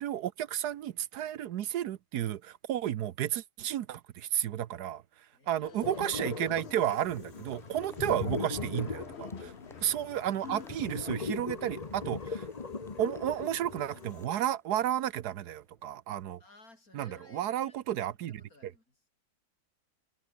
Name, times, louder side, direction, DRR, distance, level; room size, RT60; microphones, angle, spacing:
voice 1, 0.0-5.0 5.5-9.5 9.8-12.4 13.0-16.4 16.9-18.7, right 11 dB, 75° right, 1.3 m, -32 dB
voice 2, 5.3-6.0 9.5-10.4 16.4-17.8 18.2-19.1, left 2 dB, 60° left, 5.9 m, -59 dB
sound 1, 5.6-14.4, left 6 dB, 45° left, 1.4 m, -49 dB
sound 2, 5.8-14.3, left 4 dB, 25° left, 1.1 m, -39 dB
Applause, 6.3-15.9, equal, ahead, 5.3 m, -64 dB
omnidirectional pair, 1.7 m